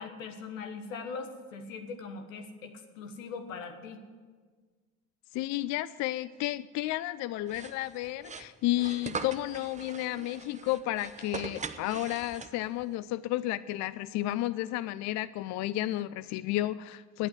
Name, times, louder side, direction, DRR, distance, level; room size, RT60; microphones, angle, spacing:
voice 1, 0.0-4.0, left 4 dB, 85° left, 6 dB, 1.5 m, -41 dB
voice 2, 5.3-17.3, left 15 dB, 45° left, 16 dB, 0.4 m, -32 dB
sound 1, 7.5-12.8, right 5 dB, 20° right, 0.7 m, -41 dB
10.0 x 8.8 x 9.8 m, 1.5 s
hypercardioid pair, 70°, 39 cm